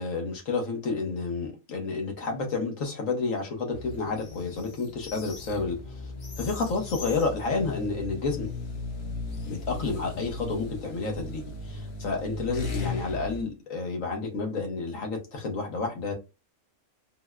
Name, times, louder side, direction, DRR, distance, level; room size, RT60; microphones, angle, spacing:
voice 1, 0.0-8.5 9.4-16.1, left 4 dB, 90° left, 1.3 m, -30 dB
sound 1, 3.7-13.4, left 3 dB, 60° left, 0.9 m, -37 dB
3.9 x 2.2 x 2.2 m
omnidirectional pair, 1.3 m